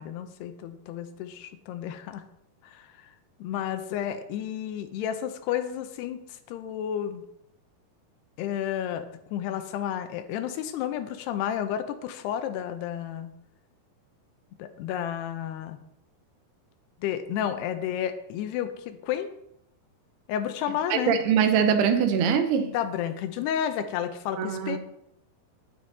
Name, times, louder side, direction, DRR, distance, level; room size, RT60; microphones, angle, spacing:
voice 1, 0.0-2.2 2.6-2.9 3.4-7.2 8.4-13.3 14.6-15.8 17.0-19.3 20.3-21.2 22.7-24.8, left 10 dB, 85° left, 9 dB, 2.9 m, -31 dB
voice 2, 20.9-22.7 24.4-24.8, right 7 dB, 80° right, 8 dB, 2.9 m, -23 dB
10.5 x 9.8 x 4.1 m, 0.79 s
omnidirectional pair, 4.7 m